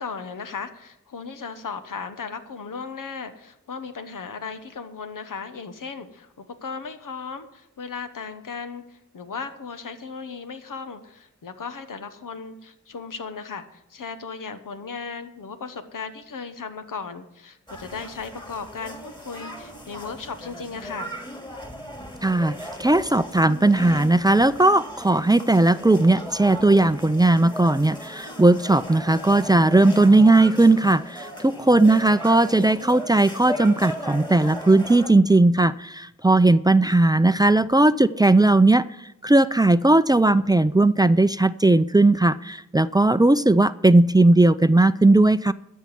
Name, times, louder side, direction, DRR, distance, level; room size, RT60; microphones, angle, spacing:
voice 1, 0.0-21.2 31.7-32.0 36.9-37.0, left 5 dB, 85° left, 9 dB, 1.2 m, -36 dB
sound 1, 17.7-35.1, equal, 15° left, 2.5 m, -37 dB
voice 2, 22.2-38.9 39.2-45.5, right 2 dB, 15° right, 14 dB, 0.4 m, -17 dB
13.0 x 5.5 x 9.4 m, 0.82 s
cardioid pair, 50°, 31 cm